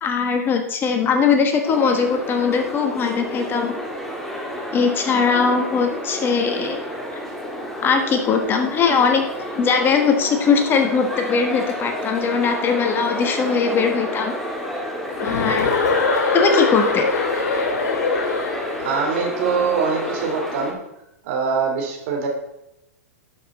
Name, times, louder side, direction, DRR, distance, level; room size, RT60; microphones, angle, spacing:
voice 1, 0.0-3.7 4.7-6.8 7.8-9.2 9.5-14.3 15.2-15.7 16.3-17.1, left 5 dB, 25° left, 5 dB, 1.3 m, -20 dB
sound 1, 1.6-20.7, left 1 dB, 5° left, 1.7 m, -30 dB
Chuckle chortle, 15.2-18.9, left 4 dB, 70° left, 3.1 m, -22 dB
voice 2, 18.8-20.8 21.2-22.3, right 5 dB, 55° right, 2 dB, 2.8 m, -23 dB
11.5 x 6.0 x 4.1 m, 0.87 s
hypercardioid pair, 110°, 9 cm